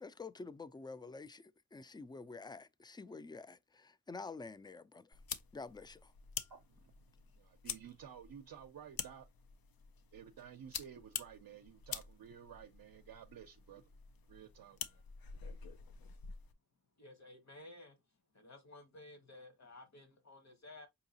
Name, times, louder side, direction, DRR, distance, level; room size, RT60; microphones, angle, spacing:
voice 1, 0.0-5.2 5.5-6.1, left 4 dB, 15° left, 0.3 m, -49 dB
sound 1, 5.1-16.5, left 7 dB, 80° left, 0.5 m, -48 dB
voice 2, 6.5-6.9 7.3-9.3 10.1-13.8 14.3-15.0, right 8 dB, 75° right, 0.5 m, -53 dB
voice 3, 17.0-18.0 18.3-20.9, left 2 dB, 50° left, 1.1 m, -55 dB
4.7 x 2.8 x 2.7 m
cardioid pair, 50°, 35 cm